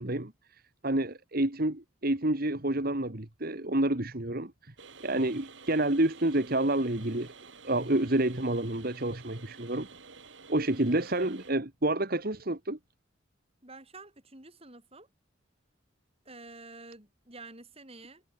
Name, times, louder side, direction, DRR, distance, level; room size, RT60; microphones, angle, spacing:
voice 1, 0.0-4.7 5.0-7.3 7.6-9.9 10.5-12.8, right 1 dB, 45° right, 1.9 m, -29 dB
sound 1, 4.8-11.5, right 5 dB, 60° right, 3.3 m, -51 dB
voice 2, 13.6-15.1 16.3-18.2, right 3 dB, 30° right, 7.0 m, -49 dB
head